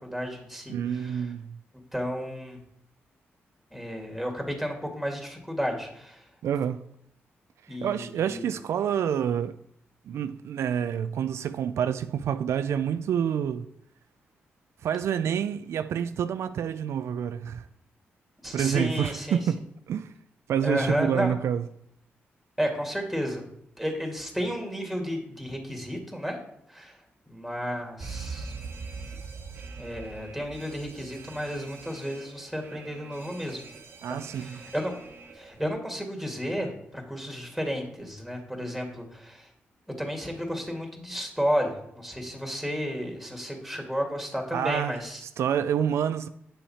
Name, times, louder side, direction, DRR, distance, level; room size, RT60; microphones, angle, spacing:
voice 1, 0.0-1.3 1.9-2.6 3.7-6.3 7.7-8.4 18.4-19.4 20.6-21.4 22.6-23.4 23.8-26.4 26.7-27.0 27.3-28.5 29.8-33.6 34.3-34.9 35.3-39.5 40.0-45.2, equal, ahead, 2.2 m, -32 dB
voice 2, 0.7-1.6 6.4-6.9 7.7-9.6 10.1-13.7 14.8-17.7 18.5-20.1 20.5-21.6 34.0-34.6 44.5-45.0 45.4-46.3, right 8 dB, 75° right, 0.3 m, -28 dB
Alarm, 28.0-35.7, right 4 dB, 60° right, 1.2 m, -42 dB
8.5 x 5.7 x 4.3 m
cardioid pair, 65°, 5 cm